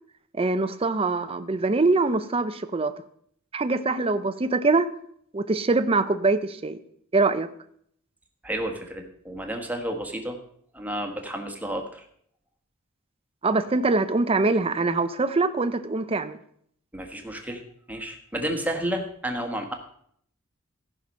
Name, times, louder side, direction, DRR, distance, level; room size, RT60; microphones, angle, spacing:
voice 1, 0.3-2.9 3.5-4.9 5.3-6.8 7.1-7.5 13.4-16.4, right 3 dB, 30° right, 11 dB, 0.6 m, -23 dB
voice 2, 8.4-10.4 10.7-12.1 16.9-17.6 17.9-19.7, right 1 dB, 10° right, 3 dB, 1.3 m, -31 dB
14.5 x 5.9 x 5.3 m, 0.66 s
head